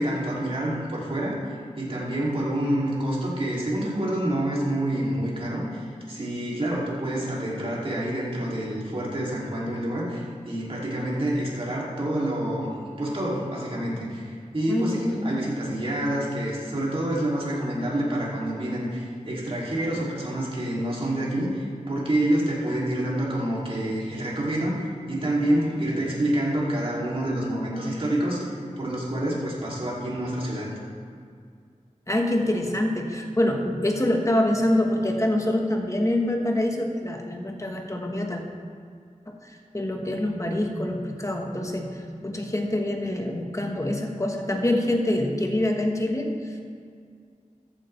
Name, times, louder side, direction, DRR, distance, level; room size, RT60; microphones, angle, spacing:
voice 1, 0.0-12.7 13.0-30.7, right 1 dB, 45° right, -5 dB, 2.8 m, -27 dB
voice 2, 14.7-15.4 32.1-38.4 39.3-46.6, left 1 dB, 25° left, 2 dB, 1.3 m, -26 dB
14.0 x 9.0 x 3.3 m, 2.2 s
wide cardioid pair, 65°, 13 cm